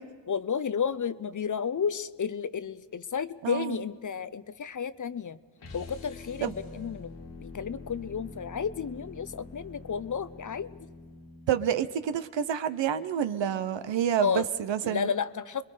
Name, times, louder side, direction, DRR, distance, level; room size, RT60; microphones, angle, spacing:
voice 1, 0.3-5.4 5.7-7.1 7.4-10.9 14.2-14.5 14.8-15.6, left 7 dB, 40° left, 15 dB, 0.8 m, -32 dB
voice 2, 3.4-3.8 6.4-6.5 11.5-15.1, right 9 dB, 75° right, 12 dB, 0.9 m, -28 dB
sound 1, 5.6-11.7, left 3 dB, 65° left, 2.2 m, -45 dB
28.0 x 22.0 x 5.0 m, 1.5 s
supercardioid pair, 40°, 45 cm